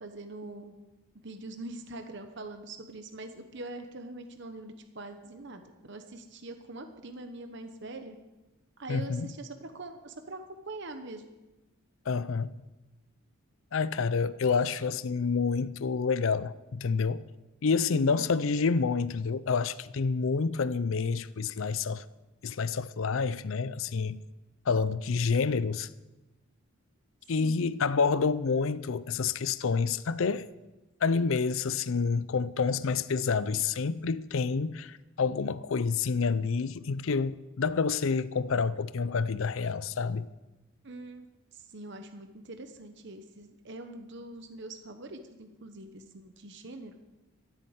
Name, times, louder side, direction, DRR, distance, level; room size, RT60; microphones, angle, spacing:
voice 1, 0.0-0.7 1.2-8.2 8.8-11.2 17.9-18.3 27.4-27.7 40.8-41.3 41.5-47.0, right 2 dB, 55° right, 1.0 m, -43 dB
voice 2, 8.9-9.3 12.1-12.6 13.7-17.2 17.6-22.0 22.4-24.2 24.7-25.9 27.3-30.5 31.0-40.3, left 5 dB, 65° left, 0.5 m, -28 dB
13.5 x 8.7 x 8.0 m
head